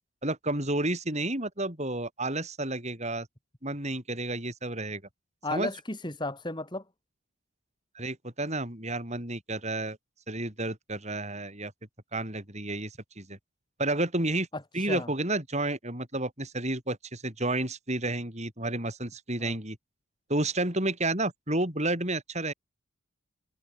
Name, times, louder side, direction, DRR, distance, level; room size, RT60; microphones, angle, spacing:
voice 1, 0.2-3.3 3.6-5.0 5.5-5.7 8.0-10.0 10.3-11.7 12.1-13.4 13.8-14.5 14.7-19.8 20.3-22.5, right 2 dB, 30° right, 7.0 m, -31 dB
voice 2, 5.4-6.9 14.5-15.1 19.4-19.6, left 2 dB, 20° left, 4.0 m, -34 dB
head